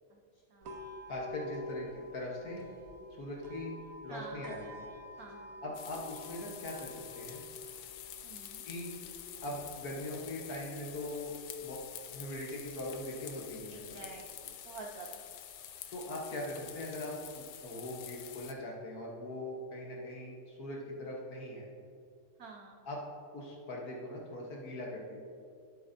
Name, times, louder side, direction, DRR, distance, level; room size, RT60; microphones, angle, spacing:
sound 1, 0.6-14.6, left 1 dB, 55° right, 1.0 m, -50 dB
voice 1, 1.1-2.7 3.2-3.7 4.0-4.9 5.6-7.4 8.6-8.9 9.4-11.3 11.6-11.8 12.1-14.1 15.9-21.7 22.8-23.0 23.3-25.2, left 1 dB, 50° left, -2 dB, 1.4 m, -41 dB
voice 2, 4.1-4.4 5.2-5.5 8.2-8.6 13.9-15.2 22.4-22.8, right 4 dB, 75° right, 0 dB, 0.8 m, -48 dB
sound 2, 5.7-18.5, left 11 dB, 75° left, 1.1 m, -48 dB
11.5 x 7.7 x 2.7 m, 2.4 s
omnidirectional pair, 2.4 m